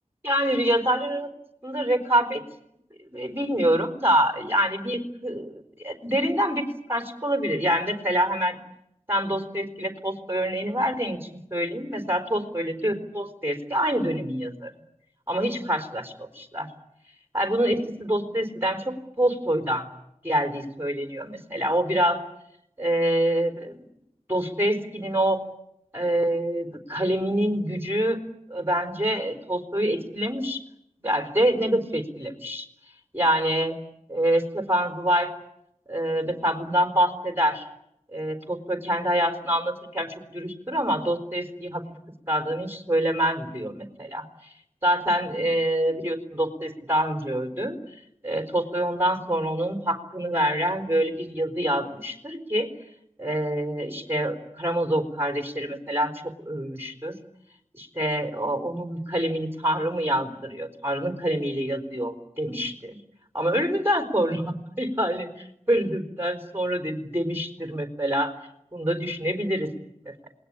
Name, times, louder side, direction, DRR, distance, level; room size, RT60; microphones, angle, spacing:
voice 1, 0.2-1.3 1.6-2.4 3.1-6.6 6.9-8.6 9.1-14.7 15.3-16.7 17.3-19.9 20.2-22.2 22.8-23.8 24.3-25.4 25.9-28.2 28.5-30.6 31.0-32.7 33.1-33.7 34.1-35.3 35.9-37.7 38.1-41.8 42.3-44.5 44.8-47.8 48.2-52.7 53.2-56.1 56.5-57.1 57.8-63.0 63.3-68.3 68.7-69.7 70.0-70.1, right 1 dB, 15° right, 6 dB, 4.2 m, -26 dB
28.0 x 20.5 x 9.9 m, 0.81 s
wide cardioid pair, 45°, 13 cm